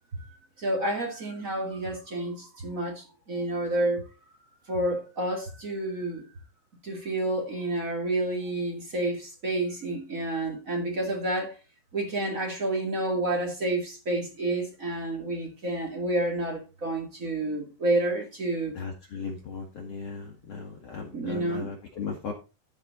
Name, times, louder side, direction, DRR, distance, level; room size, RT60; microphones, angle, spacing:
voice 1, 0.6-4.0 4.7-6.3 6.8-11.6 11.9-18.7 21.1-21.7, right 1 dB, 35° right, 1.4 m, -29 dB
voice 2, 18.7-22.3, left 5 dB, 85° left, 1.4 m, -37 dB
14.0 x 4.8 x 4.1 m
omnidirectional pair, 5.2 m